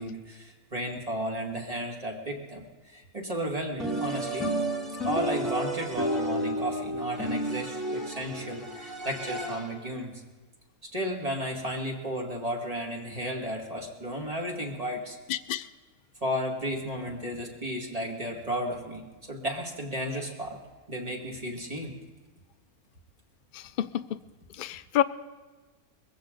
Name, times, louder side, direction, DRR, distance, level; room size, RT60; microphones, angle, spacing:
voice 1, 0.0-4.5 5.0-10.2 10.9-15.2 16.2-19.0 19.3-20.6 20.9-21.9, equal, 25° right, 0 dB, 2.2 m, -33 dB
sound 1, 3.8-9.9, right 1 dB, ahead, 2.6 m, -31 dB
voice 2, 15.3-15.6 23.5-24.0 24.6-25.0, left 12 dB, 75° left, 11 dB, 0.4 m, -28 dB
21.5 x 15.5 x 3.9 m, 1.3 s
omnidirectional pair, 1.5 m